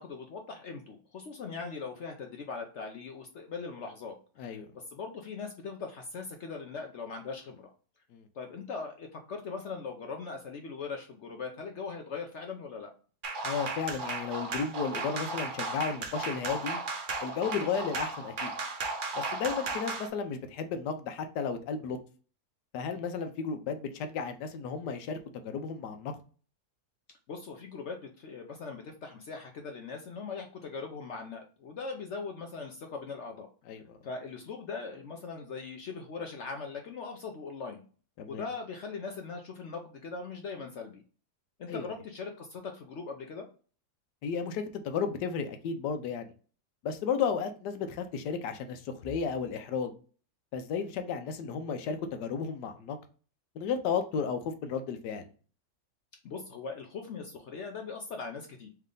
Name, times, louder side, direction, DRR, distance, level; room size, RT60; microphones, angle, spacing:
voice 1, 0.0-7.7 8.3-12.9 27.3-33.5 34.0-37.8 38.3-41.0 41.6-43.5 56.2-58.7, left 4 dB, 65° left, 0.7 m, -40 dB
sound 1, 13.2-20.1, right 3 dB, 70° right, 0.4 m, -35 dB
voice 2, 13.4-16.8 17.2-18.5 19.2-22.0 22.7-25.2 25.4-26.1 33.7-34.0 38.2-38.4 41.7-41.9 44.2-46.3 46.8-49.9 50.5-53.0 53.6-55.3, left 6 dB, 90° left, 1.3 m, -33 dB
3.4 x 3.2 x 3.7 m
omnidirectional pair, 1.7 m